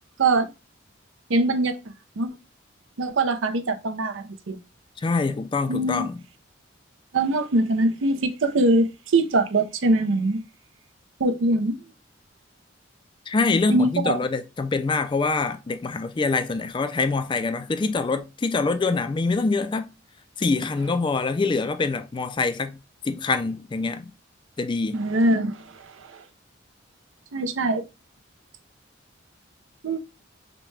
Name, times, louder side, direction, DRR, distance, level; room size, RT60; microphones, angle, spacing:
voice 1, 0.2-0.5 1.3-1.8 2.2-2.3 3.0-4.6 5.7-6.1 7.1-10.4 11.2-11.8 13.7-14.2 24.9-26.2 27.3-27.9 29.8-30.0, right 2 dB, 80° right, 0.6 m, -23 dB
voice 2, 5.0-6.2 13.3-19.9 20.4-22.8 23.0-24.1 24.6-25.0, left 3 dB, 25° left, 0.3 m, -25 dB
5.9 x 2.2 x 3.1 m
head